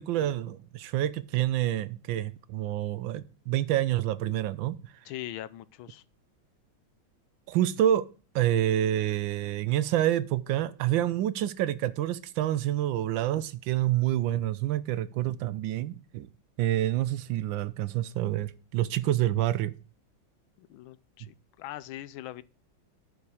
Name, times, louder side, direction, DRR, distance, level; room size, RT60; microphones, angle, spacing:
voice 1, 0.0-4.9 7.5-8.1 8.3-16.3 16.6-19.7, right 12 dB, 75° right, 1.2 m, -28 dB
voice 2, 5.0-6.0 20.6-22.4, left 14 dB, 80° left, 1.4 m, -41 dB
10.5 x 5.4 x 4.8 m
omnidirectional pair, 2.2 m